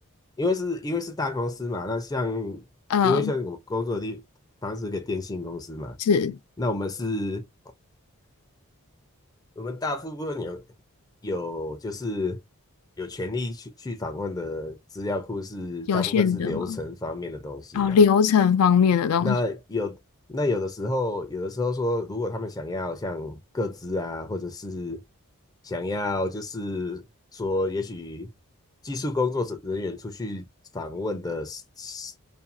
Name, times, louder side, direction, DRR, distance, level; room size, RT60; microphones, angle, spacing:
voice 1, 0.4-2.6 3.0-4.2 4.6-6.0 6.6-7.4 9.6-10.6 11.2-12.4 13.0-18.0 19.2-20.0 20.3-25.0 25.6-27.0 27.3-28.3 28.8-30.5 30.7-32.1, left 2 dB, 15° left, 0.4 m, -30 dB
voice 2, 15.9-16.8 17.7-19.3, left 7 dB, 85° left, 0.4 m, -20 dB
2.6 x 2.3 x 2.6 m
head